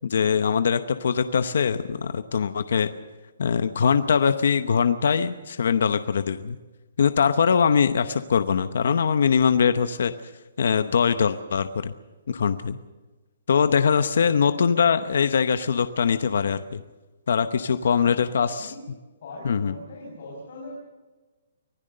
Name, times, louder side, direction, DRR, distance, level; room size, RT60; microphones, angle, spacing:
voice 1, 0.1-2.9 3.4-6.6 7.0-10.1 10.6-11.9 12.3-12.8 13.5-16.8 17.3-18.7 19.4-19.7, left 6 dB, 55° left, 11 dB, 0.8 m, -22 dB
voice 2, 13.9-14.3 17.5-18.8 19.2-20.7, left 2 dB, 40° left, -3 dB, 5.7 m, -42 dB
25.0 x 16.5 x 6.6 m, 1.2 s
hypercardioid pair, 180°, 0 cm